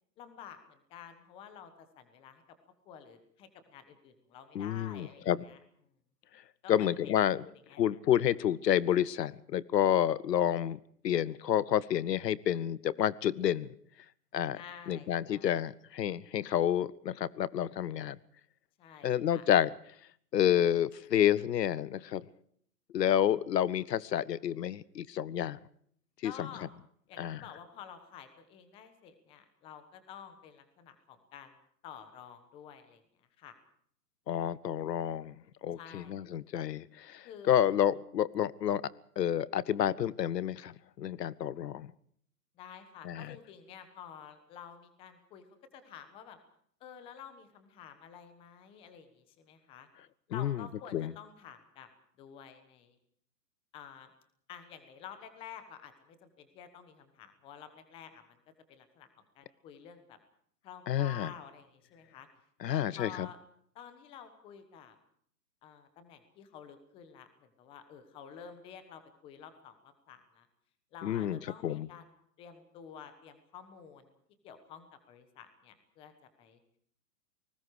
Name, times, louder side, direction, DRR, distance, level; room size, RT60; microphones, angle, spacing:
voice 1, 0.2-2.4 2.8-5.6 6.6-7.1 7.7-7.8 14.5-15.6 18.8-19.5 26.2-26.7 27.1-31.6 31.8-33.0 33.4-33.5 35.8-36.1 37.2-37.7 42.6-45.5 45.7-46.4 46.8-49.9 50.3-51.9 52.2-53.0 53.7-54.1 54.5-58.4 58.7-59.1 59.3-60.2 60.6-62.3 62.7-63.4 63.7-65.0 65.6-70.5 70.9-72.1 72.4-74.1 74.4-76.1 76.4-76.6, left 8 dB, 10° left, 10 dB, 1.3 m, -50 dB
voice 2, 4.5-5.4 6.7-7.4 7.8-13.7 14.3-14.6 14.9-18.2 19.0-19.7 20.3-22.3 22.9-25.6 26.2-26.5 27.2-27.4 34.3-35.3 35.6-38.8 39.2-41.9 43.0-43.4 50.3-50.6 50.9-51.1 60.9-61.3 62.6-63.3 71.0-71.9, left 10 dB, 85° left, 21 dB, 1.1 m, -29 dB
29.5 x 19.5 x 4.9 m, 0.63 s
hypercardioid pair, 175°, 48 cm